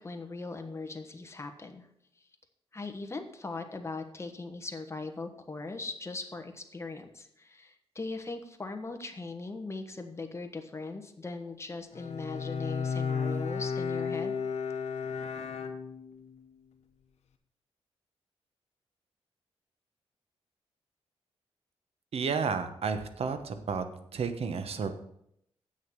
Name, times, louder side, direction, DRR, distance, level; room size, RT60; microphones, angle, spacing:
voice 1, 0.0-1.9 2.7-14.4, left 3 dB, 25° left, 6 dB, 1.3 m, -39 dB
Bowed string instrument, 11.9-16.3, left 5 dB, 85° left, 0.9 m, -33 dB
voice 2, 22.1-23.8 24.1-24.9, right 5 dB, 65° right, 9 dB, 1.1 m, -31 dB
8.1 x 6.4 x 7.3 m, 0.74 s
cardioid pair, 95°, 11 cm